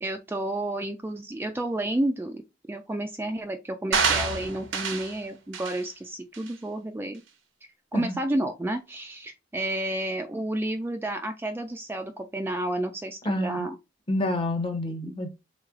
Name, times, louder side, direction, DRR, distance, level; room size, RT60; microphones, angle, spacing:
voice 1, 0.0-2.4 2.7-7.2 7.9-13.8, right 1 dB, 10° right, 0.3 m, -31 dB
sound 1, 3.9-5.1 5.5-5.8 6.3-6.5, right 5 dB, 85° right, 0.9 m, -27 dB
voice 2, 13.2-13.7 14.1-15.3, left 1 dB, 30° left, 0.8 m, -28 dB
3.3 x 3.2 x 3.5 m
head